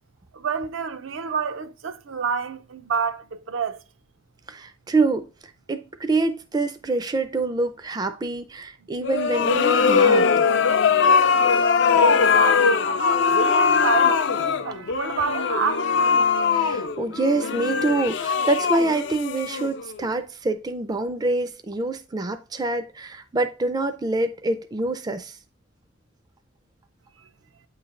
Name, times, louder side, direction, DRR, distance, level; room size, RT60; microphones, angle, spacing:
voice 1, 0.3-3.8 12.3-15.9, right 6 dB, 75° right, 0.5 m, -28 dB
voice 2, 4.5-5.3 5.7-10.3 16.5-25.4, right 2 dB, 20° right, 0.4 m, -26 dB
sound 1, 9.0-20.0, left 5 dB, 60° left, 0.4 m, -20 dB
8.6 x 3.2 x 3.6 m
head